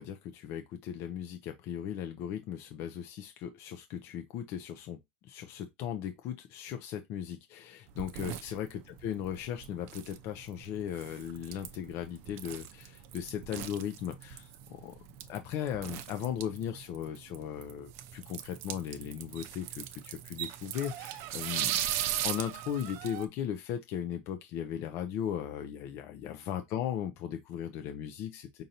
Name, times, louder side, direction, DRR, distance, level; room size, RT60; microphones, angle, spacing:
voice 1, 0.0-5.0 5.2-15.0 15.3-21.7 22.2-28.6, left 9 dB, 40° left, 0.5 m, -37 dB
sound 1, 7.9-23.3, right 11 dB, 45° right, 0.5 m, -39 dB
5.1 x 2.6 x 2.8 m
supercardioid pair, 155°, 6 cm